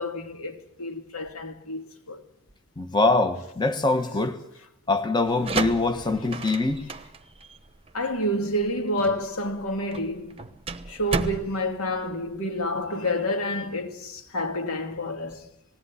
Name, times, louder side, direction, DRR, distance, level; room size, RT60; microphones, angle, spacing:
voice 1, 0.0-2.2 7.9-10.4 10.9-15.5, left 1 dB, 85° left, 2.6 m, -29 dB
voice 2, 2.8-4.4 4.9-6.8, left 3 dB, 20° left, 1.3 m, -23 dB
sound 1, 5.2-12.8, right 3 dB, 25° right, 1.0 m, -34 dB
19.5 x 17.0 x 9.8 m
head